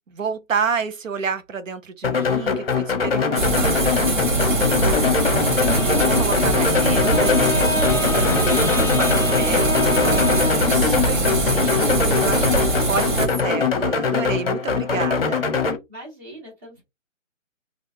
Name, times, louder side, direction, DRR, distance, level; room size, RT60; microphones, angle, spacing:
voice 1, 0.1-12.6 12.9-15.4, right 5 dB, 80° right, 0.7 m, -30 dB
sound 1, 2.0-15.8, left 5 dB, 50° left, 0.7 m, -22 dB
sound 2, 3.3-13.3, right 2 dB, 40° right, 1.0 m, -22 dB
Bowed string instrument, 5.6-10.8, left 1 dB, 10° left, 0.8 m, -27 dB
voice 2, 15.9-16.8, right 1 dB, 15° right, 1.5 m, -41 dB
3.6 x 2.4 x 2.7 m
figure-of-eight pair, 155°, 38 cm